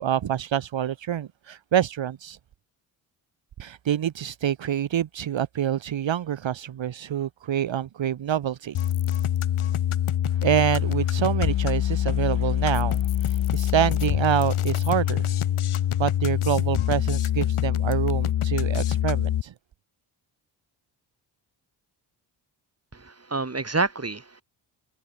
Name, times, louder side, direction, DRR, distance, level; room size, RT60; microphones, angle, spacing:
voice 1, 0.0-2.4 3.6-8.7 10.4-15.3 16.0-19.5, right 10 dB, 65° right, 1.5 m, -26 dB
sound 1, 8.7-19.4, left 11 dB, 80° left, 4.0 m, -24 dB
voice 2, 22.9-24.4, right 3 dB, 30° right, 5.7 m, -28 dB
supercardioid pair, 50°, 49 cm